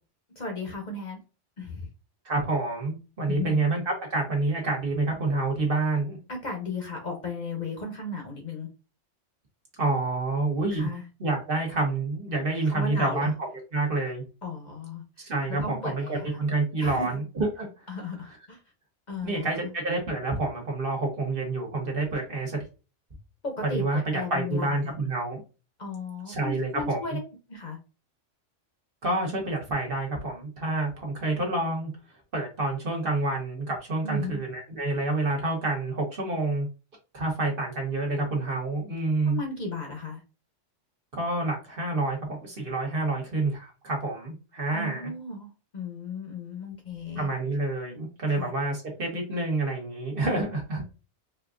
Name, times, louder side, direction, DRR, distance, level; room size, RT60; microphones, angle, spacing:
voice 1, 0.4-1.2 1.6-1.9 3.3-3.6 6.3-8.7 10.7-11.0 12.7-13.3 14.4-16.4 16.8-17.1 17.9-18.6 19.1-19.7 23.4-24.9 25.8-27.2 27.5-27.8 34.0-34.4 39.3-40.2 44.7-47.3 48.3-48.5, left 3 dB, 45° left, 1 dB, 0.8 m, -35 dB
voice 2, 2.2-6.2 9.8-10.9 11.2-13.3 13.7-14.2 15.2-17.7 19.2-22.6 23.7-25.4 26.3-27.2 29.0-31.9 32.3-36.7 37.1-39.4 41.1-45.1 47.1-50.8, right 2 dB, 50° right, 0 dB, 1.3 m, -28 dB
4.4 x 2.4 x 2.5 m, 0.31 s
omnidirectional pair, 1.3 m